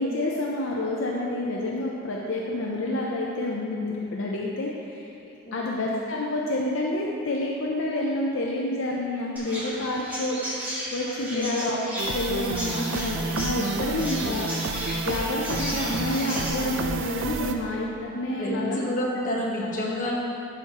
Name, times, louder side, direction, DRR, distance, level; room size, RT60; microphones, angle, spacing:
voice 1, 0.0-10.4 10.9-11.8 12.1-14.5 14.8-18.8, left 1 dB, 70° left, -2 dB, 0.6 m, -29 dB
voice 2, 5.5-5.8 11.3-11.7 18.4-20.1, left 1 dB, 40° left, -5 dB, 1.2 m, -29 dB
Chirp tweet, 9.4-16.5, equal, 10° right, 1.2 m, -34 dB
sound 1, 12.0-17.5, right 3 dB, 65° right, 0.4 m, -30 dB
12.0 x 4.5 x 2.9 m, 2.7 s
head